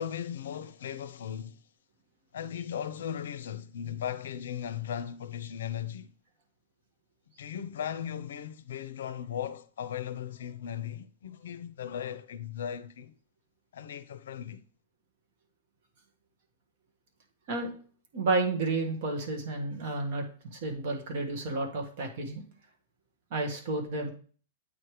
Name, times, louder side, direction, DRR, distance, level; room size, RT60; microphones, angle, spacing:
voice 1, 0.0-1.6 2.3-6.1 7.4-13.1 13.7-14.6, left 9 dB, 85° left, 0.5 m, -37 dB
voice 2, 18.1-20.2 20.5-22.4 23.3-24.1, right 3 dB, 40° right, 1.4 m, -31 dB
8.3 x 3.2 x 4.8 m
supercardioid pair, 175°, 0 cm